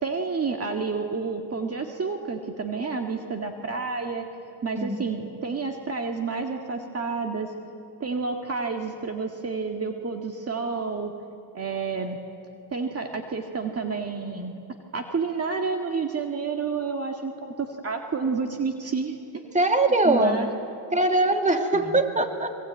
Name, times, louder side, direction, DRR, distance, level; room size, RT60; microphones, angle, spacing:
voice 1, 0.0-4.2 4.6-7.5 8.0-11.1 11.5-12.2 12.7-14.5 14.9-19.6 20.0-20.5 21.7-22.0, right 4 dB, 35° right, 3 dB, 2.0 m, -30 dB
voice 2, 19.5-20.4 20.9-22.5, right 2 dB, 15° right, 5 dB, 2.6 m, -21 dB
25.5 x 23.0 x 9.2 m, 2.7 s
cardioid pair, 85°, 43 cm